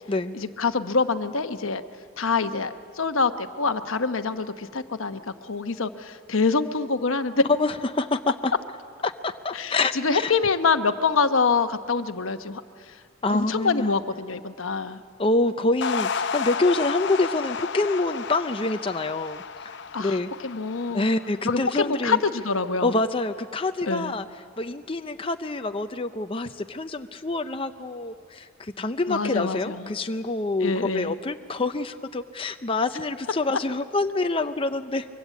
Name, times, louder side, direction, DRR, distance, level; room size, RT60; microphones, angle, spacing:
voice 1, 0.3-1.8 2.2-7.4 9.5-12.6 13.3-15.0 19.9-21.1 21.5-23.0 23.9-24.1 29.1-29.9 30.6-31.1, left 4 dB, 75° left, 9 dB, 1.0 m, -25 dB
voice 2, 7.6-8.5 9.0-10.3 13.2-13.9 15.2-20.3 20.9-22.2 22.8-24.3 24.6-35.1, left 2 dB, 25° left, 7 dB, 0.6 m, -26 dB
Spacey Trip, 15.8-22.3, left 5 dB, 60° left, 0.7 m, -32 dB
24.5 x 23.5 x 8.4 m, 2.2 s
head